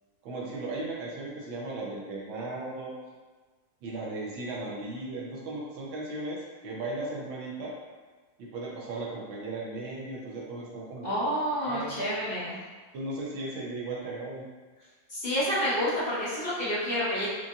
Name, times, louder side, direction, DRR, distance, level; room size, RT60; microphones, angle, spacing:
voice 1, 0.2-2.9 3.8-7.7 8.4-11.1 11.6-12.1 12.9-14.5, right 2 dB, 85° right, -4 dB, 1.5 m, -36 dB
voice 2, 11.0-12.5 15.1-17.3, equal, 40° left, -9 dB, 1.0 m, -29 dB
5.5 x 2.5 x 2.4 m, 1.4 s
omnidirectional pair, 2.1 m